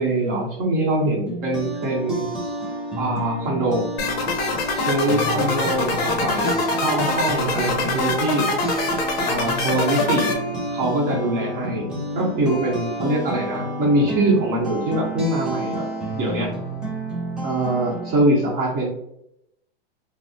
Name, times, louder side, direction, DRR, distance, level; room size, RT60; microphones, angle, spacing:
voice 1, 0.0-2.3 3.0-3.8 4.8-8.5 9.2-10.3 10.7-16.5 17.4-18.9, right 2 dB, 30° right, -2 dB, 1.0 m, -23 dB
sound 1, 1.3-18.2, right 1 dB, 5° right, 0.5 m, -30 dB
sound 2, 4.0-10.3, left 3 dB, 35° left, 0.7 m, -24 dB
3.0 x 2.1 x 2.7 m, 0.77 s
hypercardioid pair, 135°, 31 cm